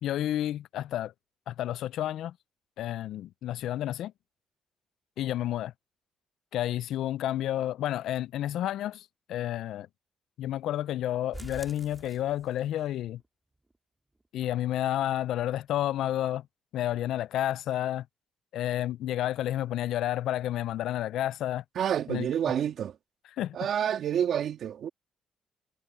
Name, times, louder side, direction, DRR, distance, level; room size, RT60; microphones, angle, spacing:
voice 1, 0.0-1.1 1.5-2.3 2.8-4.1 5.2-5.7 6.5-9.9 10.4-13.2 14.3-16.5 16.7-18.1 18.5-21.6 22.1-22.3 23.4-23.6, left 12 dB, 80° left, 0.4 m, -30 dB
sound 1, 11.3-12.9 13.2-13.3 13.7-13.8 14.2-14.3, right 2 dB, 15° right, 2.9 m, -46 dB
voice 2, 21.8-23.0 23.5-24.9, right 9 dB, 65° right, 2.0 m, -28 dB
cardioid pair, 90°, 0 cm